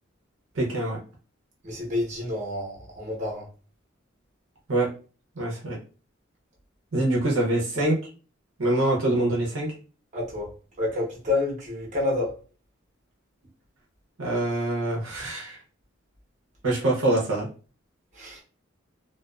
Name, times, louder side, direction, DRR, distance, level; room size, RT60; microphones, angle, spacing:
voice 1, 0.5-1.0 4.7-4.9 5.4-5.8 6.9-7.9 8.6-9.7 14.2-15.6 16.6-17.5, right 1 dB, 80° right, 0.7 m, -24 dB
voice 2, 1.6-3.5 10.1-10.5 10.8-12.3 18.1-18.4, left 2 dB, 40° right, 0.9 m, -29 dB
2.3 x 2.3 x 2.3 m
head